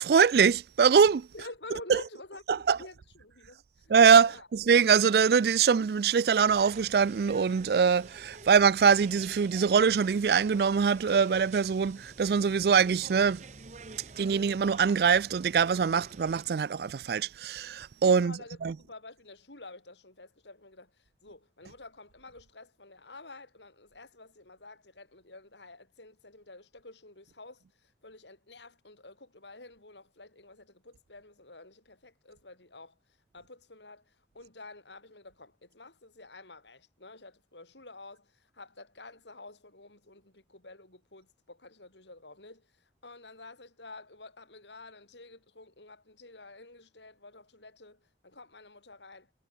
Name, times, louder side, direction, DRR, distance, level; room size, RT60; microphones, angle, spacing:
voice 1, 0.0-1.3 1.9-2.0 2.5-2.8 3.9-13.4 14.2-18.7, right 6 dB, 60° right, 0.4 m, -23 dB
voice 2, 1.3-4.0 4.2-4.5 18.1-33.0 33.3-49.3, left 2 dB, 90° left, 6.1 m, -50 dB
sound 1, 6.5-16.5, right 3 dB, 40° right, 1.1 m, -49 dB
head